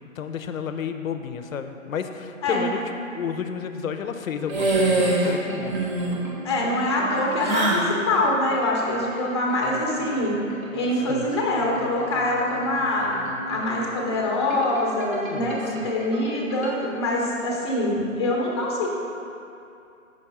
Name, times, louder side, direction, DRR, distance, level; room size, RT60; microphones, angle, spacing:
voice 1, 0.2-5.9 11.1-11.3 15.3-15.9, left 7 dB, 75° left, 8 dB, 0.5 m, -32 dB
sound 1, 4.4-16.7, right 2 dB, 80° right, 1.0 m, -37 dB
sound 2, 4.5-5.3 5.6-6.2 7.4-7.9, right 2 dB, 35° right, 0.8 m, -22 dB
voice 2, 6.4-7.8 8.1-10.3 10.7-13.1 13.5-18.9, left 1 dB, 20° left, -2 dB, 0.6 m, -24 dB
5.3 x 3.6 x 5.3 m, 2.6 s
figure-of-eight pair, 140°, 40 cm